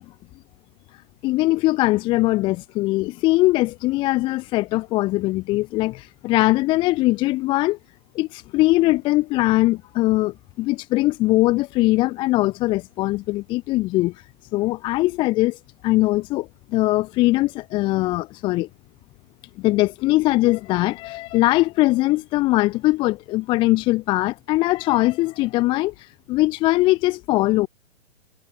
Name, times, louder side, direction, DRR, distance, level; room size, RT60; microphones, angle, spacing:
voice 1, 1.2-7.8 8.1-14.2 14.5-18.7 19.6-27.7, left 19 dB, 15° left, 0.7 m, -21 dB
hypercardioid pair, 145°, 39 cm